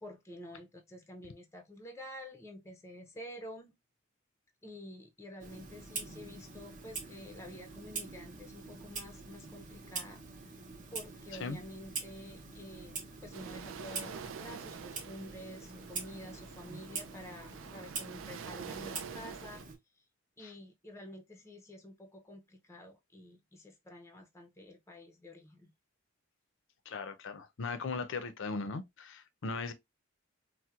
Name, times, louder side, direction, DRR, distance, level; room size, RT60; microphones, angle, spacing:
voice 1, 0.0-3.7 4.6-10.2 10.9-19.6 20.4-25.7, left 1 dB, 15° left, 0.5 m, -49 dB
Clock, 5.4-19.7, right 4 dB, 40° right, 0.7 m, -45 dB
sound 1, 13.3-19.6, right 7 dB, 70° right, 0.3 m, -47 dB
voice 2, 26.9-29.7, left 4 dB, 65° left, 0.5 m, -38 dB
4.3 x 2.1 x 2.3 m
head